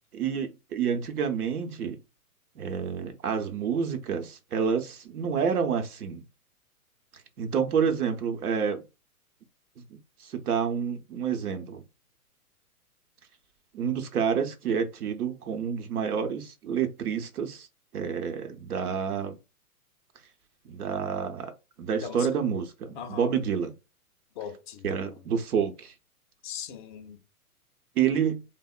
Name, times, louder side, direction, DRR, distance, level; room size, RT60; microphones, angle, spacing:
voice 1, 0.1-2.0 2.6-6.2 7.4-8.8 10.2-11.8 13.7-17.7 17.9-19.4 20.7-21.5 21.8-23.7 24.8-25.9 28.0-28.4, right 7 dB, 75° right, 0.7 m, -28 dB
voice 2, 22.9-23.3 24.4-25.1 26.4-27.2, left 8 dB, 35° left, 0.4 m, -39 dB
3.4 x 2.0 x 2.3 m
figure-of-eight pair, 115°, 45 cm